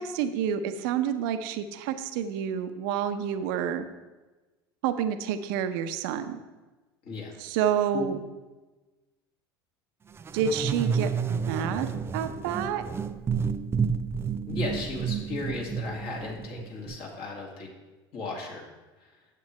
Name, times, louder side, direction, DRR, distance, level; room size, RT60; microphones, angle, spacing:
voice 1, 0.0-3.8 4.8-6.4 7.4-8.2 10.3-11.9 12.1-12.8, right 8 dB, 65° right, 9 dB, 0.7 m, -29 dB
sound 1, 10.2-17.0, right 6 dB, 20° right, 0.4 m, -30 dB
voice 2, 14.5-17.7 18.1-18.7 19.0-19.2, left 3 dB, 45° left, -1 dB, 2.3 m, -35 dB
9.8 x 7.6 x 3.2 m, 1.2 s
hypercardioid pair, 80°, 13 cm